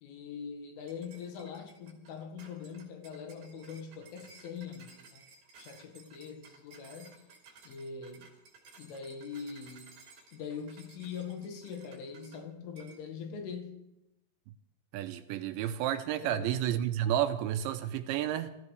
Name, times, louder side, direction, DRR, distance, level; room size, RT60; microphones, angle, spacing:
voice 1, 0.0-5.2 5.6-7.2 7.6-8.3 8.8-9.9 10.3-13.8 16.2-16.6, left 6 dB, 90° left, 4.3 m, -42 dB
sound 1, 0.9-12.4 12.8-13.0, right 4 dB, 50° right, 5.1 m, -57 dB
voice 2, 14.9-18.5, right 11 dB, 80° right, 2.8 m, -31 dB
25.0 x 15.0 x 3.3 m
omnidirectional pair, 5.5 m